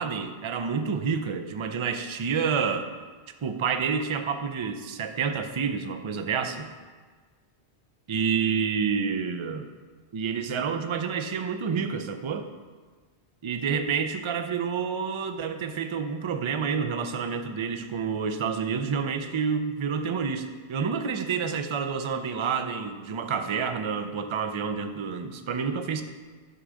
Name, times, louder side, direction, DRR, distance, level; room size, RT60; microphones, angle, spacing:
voice 1, 0.0-2.9 3.4-6.7 8.1-9.7 10.1-12.5 13.4-26.0, right 6 dB, 45° right, 7 dB, 0.4 m, -29 dB
9.7 x 3.7 x 6.2 m, 1.4 s
omnidirectional pair, 1.1 m